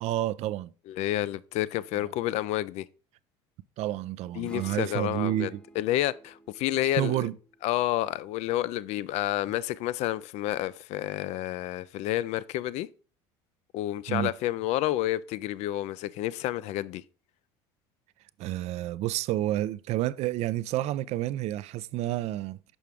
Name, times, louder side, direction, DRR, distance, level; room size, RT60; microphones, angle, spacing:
voice 1, 0.0-0.7 3.8-5.6 7.0-7.3 14.1-14.3 18.4-22.8, right 14 dB, 60° right, 0.4 m, -30 dB
voice 2, 0.9-2.9 4.4-5.5 5.8-7.3 7.6-12.9 13.7-17.0, left 14 dB, 60° left, 0.4 m, -29 dB
sound 1, 4.4-8.2, right 1 dB, 5° left, 0.8 m, -52 dB
6.3 x 5.6 x 3.4 m
supercardioid pair, 85°, 13 cm